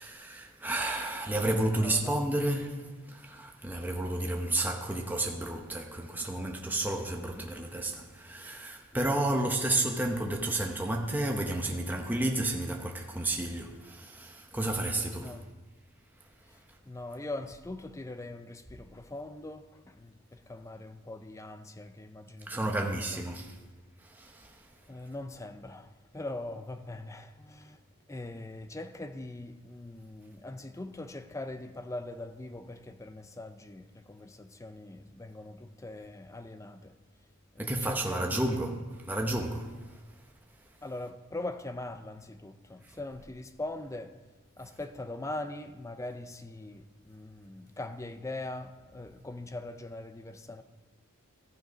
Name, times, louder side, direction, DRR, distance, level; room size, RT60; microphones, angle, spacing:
voice 1, 0.0-15.4 22.5-23.6 24.0-24.7 37.6-40.0 42.9-43.0, right 1 dB, 10° right, 0.8 m, -31 dB
voice 2, 1.8-2.4 8.9-9.7 15.1-15.5 16.5-23.2 24.9-27.8 28.1-37.0 37.5-38.6 40.8-44.2 44.6-50.6, left 2 dB, 15° left, 0.5 m, -42 dB
15.0 x 6.3 x 5.1 m
head